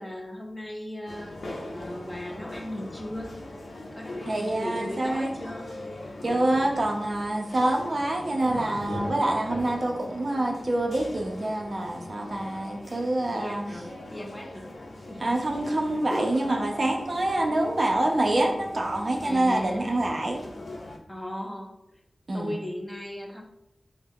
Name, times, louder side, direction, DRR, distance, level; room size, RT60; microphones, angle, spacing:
voice 1, 0.0-1.4 1.7-3.3 3.9-5.7 13.3-14.7 15.1-15.4 19.2-19.9 21.1-21.7 22.3-23.4, left 1 dB, 15° left, 1 dB, 0.4 m, -37 dB
sound 1, 1.1-21.0, left 1 dB, 70° left, 0.4 m, -40 dB
voice 2, 4.3-5.3 6.2-13.8 15.2-20.4 22.3-22.6, right 1 dB, 50° right, 1 dB, 0.4 m, -26 dB
2.2 x 2.0 x 3.4 m, 0.87 s
wide cardioid pair, 70°, 0 cm